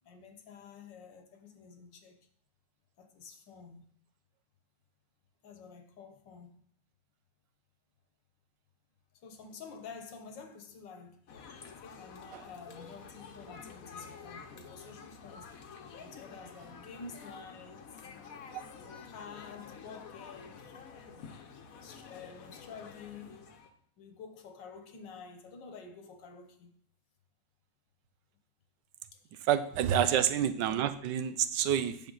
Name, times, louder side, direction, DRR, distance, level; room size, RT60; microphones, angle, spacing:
voice 1, 0.0-2.2 3.0-3.9 5.4-6.5 9.1-11.2 11.8-15.5 16.0-20.8 21.8-23.5 24.0-26.7 29.1-29.4 29.7-30.1, left 5 dB, 80° left, 1.7 m, -50 dB
sound 1, 11.3-23.7, left 6 dB, 55° left, 1.2 m, -49 dB
voice 2, 29.4-32.1, right 9 dB, 80° right, 1.3 m, -28 dB
9.1 x 6.8 x 3.9 m
omnidirectional pair, 1.9 m